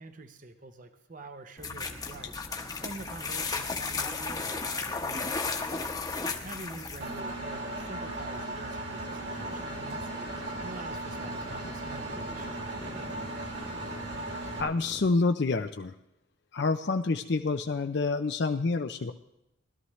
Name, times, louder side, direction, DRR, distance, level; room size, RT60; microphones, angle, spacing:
voice 1, 0.0-5.9 6.4-13.1, right 2 dB, 40° right, 8 dB, 0.8 m, -46 dB
sound 1, 1.6-7.2, left 4 dB, 20° left, 1.0 m, -34 dB
Engine, 7.0-14.6, right 2 dB, 55° right, 2.5 m, -37 dB
sound 2, 9.0-15.1, equal, 5° right, 0.5 m, -46 dB
voice 2, 14.6-15.9 16.5-19.1, left 3 dB, 55° left, 7 dB, 0.5 m, -28 dB
19.5 x 12.5 x 3.2 m, 0.85 s
head